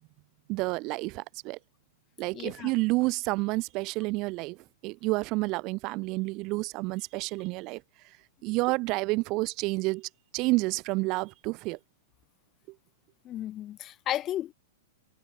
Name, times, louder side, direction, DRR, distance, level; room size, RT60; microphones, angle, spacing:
voice 1, 0.5-1.6 2.2-4.6 4.8-7.8 8.4-11.8, right 24 dB, 40° right, 0.5 m, -29 dB
voice 2, 2.3-2.7 13.2-14.5, left 12 dB, 30° left, 1.5 m, -34 dB
hypercardioid pair, 135°, 0 cm